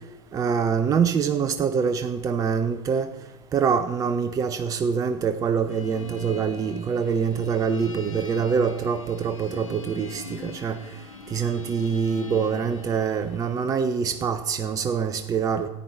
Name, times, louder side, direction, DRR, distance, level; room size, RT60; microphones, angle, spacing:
voice 1, 0.3-3.1 3.5-10.8 11.3-15.7, right 6 dB, 20° right, 10 dB, 0.6 m, -25 dB
sound 1, 5.7-13.6, left 4 dB, 80° left, 1.6 m, -42 dB
14.0 x 9.3 x 4.4 m, 1.0 s
figure-of-eight pair, 85°, 17 cm